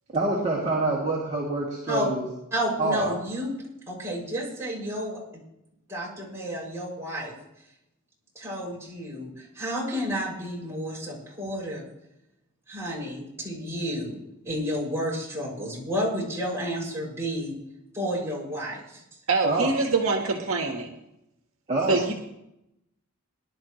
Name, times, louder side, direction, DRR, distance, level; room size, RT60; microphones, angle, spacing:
voice 1, 0.1-2.3 2.8-3.2 19.4-19.7 21.7-22.0, right 2 dB, 30° right, -5 dB, 2.8 m, -26 dB
voice 2, 2.5-3.5 3.9-5.4 5.9-7.4 8.3-11.8 12.7-14.2 14.4-17.6 17.9-19.0, equal, 10° right, -5 dB, 6.7 m, -31 dB
voice 3, 19.3-21.0 21.9-22.1, right 3 dB, 65° right, 2 dB, 1.6 m, -25 dB
23.5 x 12.0 x 3.2 m, 0.84 s
head